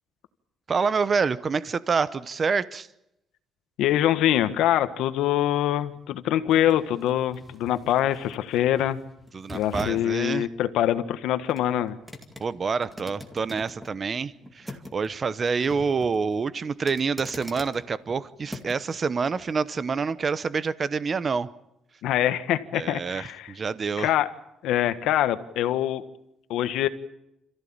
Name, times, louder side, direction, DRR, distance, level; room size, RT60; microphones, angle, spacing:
voice 1, 0.7-2.9 9.3-10.5 12.4-21.5 22.7-24.1, right 5 dB, 30° right, 16 dB, 0.8 m, -27 dB
voice 2, 3.8-9.0 9.5-11.9 22.0-23.5 24.0-24.3 24.6-26.0 26.5-26.9, left 12 dB, 80° left, 11 dB, 1.4 m, -24 dB
sound 1, 4.2-18.9 19.4-19.5, left 1 dB, 5° right, 2.3 m, -44 dB
27.5 x 15.0 x 8.8 m, 0.86 s
cardioid pair, 150°, 0 cm